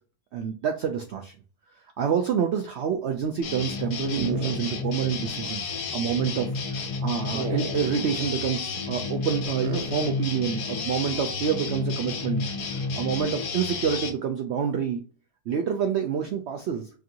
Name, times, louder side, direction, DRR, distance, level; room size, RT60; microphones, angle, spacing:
voice 1, 0.3-1.3 2.0-12.5 12.7-15.0 15.5-16.9, right 7 dB, 85° right, 5 dB, 0.5 m, -28 dB
sound 1, 3.4-14.1, left 4 dB, 80° left, 1.4 m, -31 dB
sound 2, 4.2-5.0 5.3-5.4 7.3-8.1 9.6-10.1, right 3 dB, 55° right, 1.0 m, -35 dB
5.3 x 2.5 x 2.7 m, 0.39 s
omnidirectional pair, 1.7 m